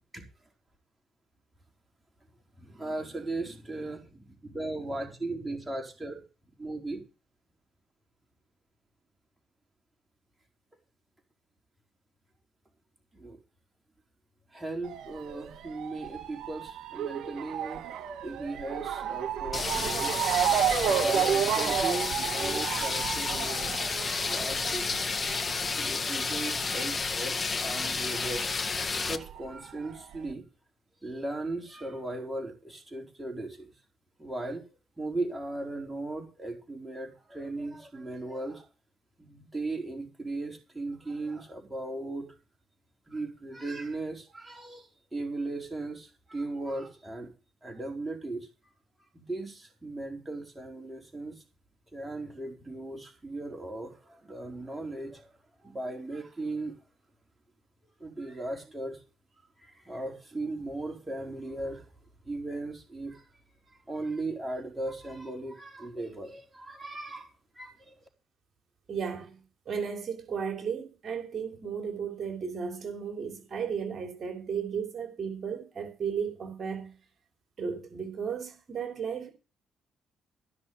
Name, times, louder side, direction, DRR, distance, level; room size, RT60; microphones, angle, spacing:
voice 1, 2.6-6.2 6.6-7.0 13.1-13.4 14.5-17.9 18.2-20.2 20.7-23.8 24.2-24.9 25.7-28.4 28.9-30.4 31.0-33.7 34.2-34.6 35.0-38.7 39.2-42.3 43.1-47.3 47.6-48.5 49.1-51.4 51.9-55.3 55.6-56.8 58.0-59.0 59.6-61.9 62.2-63.2 63.7-67.9, right 2 dB, 10° right, 4.8 m, -37 dB
Motor vehicle (road) / Siren, 14.8-27.9 28.1-29.3 29.9-30.0 30.3-30.4, right 9 dB, 75° right, 1.7 m, -32 dB
sound 1, 19.5-29.2, left 4 dB, 35° left, 1.6 m, -31 dB
voice 2, 68.9-69.3 69.7-76.9 77.6-79.3, right 6 dB, 50° right, 3.4 m, -34 dB
16.5 x 6.3 x 7.0 m
cardioid pair, 90°, 0 cm